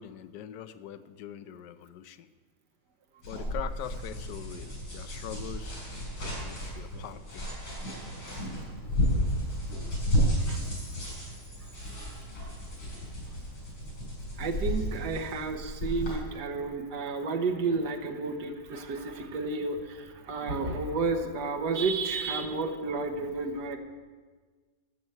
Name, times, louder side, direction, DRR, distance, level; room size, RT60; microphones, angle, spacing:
voice 1, 0.0-2.3 3.3-5.8 6.2-7.6, left 10 dB, 70° left, 11 dB, 1.2 m, -42 dB
sound 1, 3.2-16.1, equal, 90° left, 5.6 m, -32 dB
voice 2, 14.4-23.8, right 3 dB, 60° right, 5 dB, 1.6 m, -31 dB
12.0 x 6.9 x 7.8 m, 1.4 s
omnidirectional pair, 2.1 m